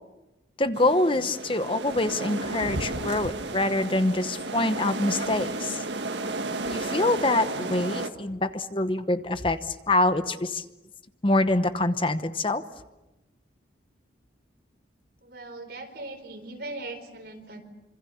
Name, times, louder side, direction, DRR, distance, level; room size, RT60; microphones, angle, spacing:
voice 1, 0.6-5.8 6.7-10.6 11.2-12.6, left 2 dB, 30° left, 10 dB, 0.9 m, -25 dB
sound 1, 0.7-8.1, right 2 dB, 75° right, 1.7 m, -33 dB
voice 2, 15.2-17.6, right 2 dB, 60° right, 6 dB, 4.4 m, -39 dB
27.0 x 26.5 x 7.1 m, 1.0 s
head